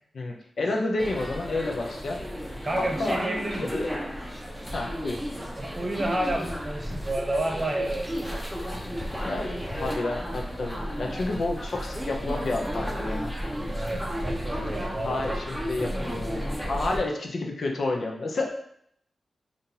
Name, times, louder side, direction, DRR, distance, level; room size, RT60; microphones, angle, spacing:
voice 1, 0.1-2.2 2.8-3.2 3.6-4.0 4.7-5.2 9.2-9.5 9.7-13.3 14.6-14.7 15.0-16.4 16.7-18.5, left 2 dB, 70° left, 1 dB, 0.6 m, -30 dB
sound 1, 1.0-17.0, equal, ahead, 0.7 m, -33 dB
voice 2, 2.6-3.8 5.6-8.1 13.7-15.4, right 1 dB, 40° right, 1 dB, 0.8 m, -30 dB
3.7 x 2.6 x 2.8 m, 0.70 s
cardioid pair, 45°, 0 cm